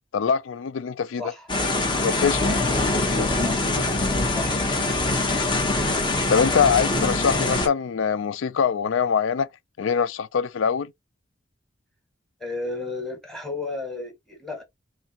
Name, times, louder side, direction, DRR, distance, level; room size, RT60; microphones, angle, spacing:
voice 1, 0.1-1.2 2.0-2.5 6.3-9.5 9.8-10.9, left 6 dB, 85° left, 0.4 m, -23 dB
voice 2, 1.1-1.5 3.4-3.9 4.4-4.7 12.4-14.6, left 2 dB, ahead, 1.5 m, -33 dB
sound 1, 1.5-7.7, left 2 dB, 25° left, 1.0 m, -23 dB
4.4 x 2.7 x 2.8 m
head